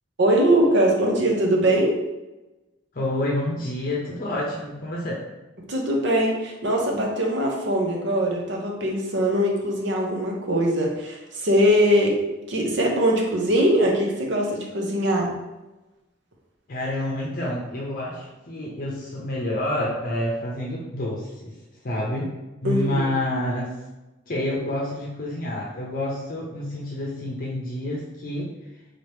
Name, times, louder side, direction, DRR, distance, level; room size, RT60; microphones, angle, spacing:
voice 1, 0.2-1.9 5.7-12.2 12.5-15.3 22.6-23.0, equal, 65° right, 0 dB, 0.8 m, -21 dB
voice 2, 2.9-5.2 16.7-21.5 21.8-22.3 22.6-23.8 24.3-28.5, left 1 dB, 45° left, -3 dB, 0.7 m, -28 dB
4.1 x 2.9 x 3.3 m, 1.0 s
head